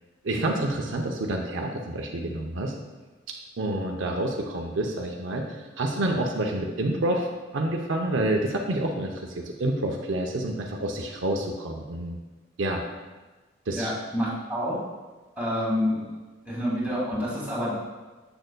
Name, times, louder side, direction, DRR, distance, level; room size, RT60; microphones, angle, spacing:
voice 1, 0.2-2.7 3.6-7.3 7.5-12.2 12.6-12.8 13.7-13.9, right 1 dB, 65° right, 0 dB, 0.6 m, -28 dB
voice 2, 13.8-14.8 15.4-16.0 16.4-17.8, equal, 10° right, -7 dB, 1.8 m, -28 dB
7.8 x 6.4 x 2.2 m, 1.3 s
head